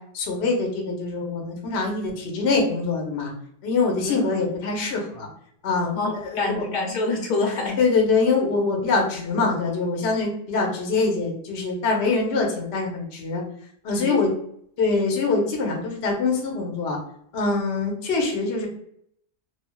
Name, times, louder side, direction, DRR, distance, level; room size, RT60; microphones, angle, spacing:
voice 1, 0.1-3.3 3.6-5.3 5.6-6.0 6.4-6.6 7.8-13.4 13.8-14.3 14.8-17.0 17.3-18.7, left 4 dB, 55° left, 0 dB, 0.9 m, -24 dB
voice 2, 6.0-7.8 14.0-14.2, left 3 dB, 85° left, 1 dB, 1.2 m, -26 dB
3.2 x 2.3 x 2.2 m, 0.67 s
omnidirectional pair, 1.7 m